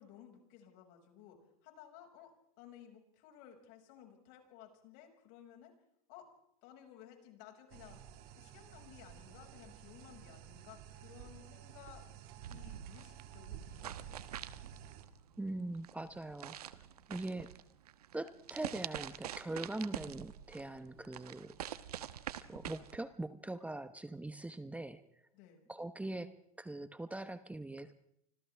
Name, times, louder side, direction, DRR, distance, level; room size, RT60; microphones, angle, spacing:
voice 1, 0.0-5.7 6.1-6.3 6.6-8.0 8.4-12.0 12.5-14.5 25.3-25.7, left 10 dB, 60° left, 3 dB, 6.1 m, -57 dB
sound 1, 7.7-15.0, right 10 dB, 55° right, 2.4 m, -53 dB
sound 2, 12.4-23.0, right 10 dB, 85° right, 1.2 m, -46 dB
voice 2, 15.4-16.8 17.1-17.5 18.1-21.6 22.5-25.0 25.7-27.9, right 2 dB, 5° right, 11 dB, 1.1 m, -42 dB
29.5 x 26.0 x 3.5 m, 0.75 s
hypercardioid pair, 100°, 19 cm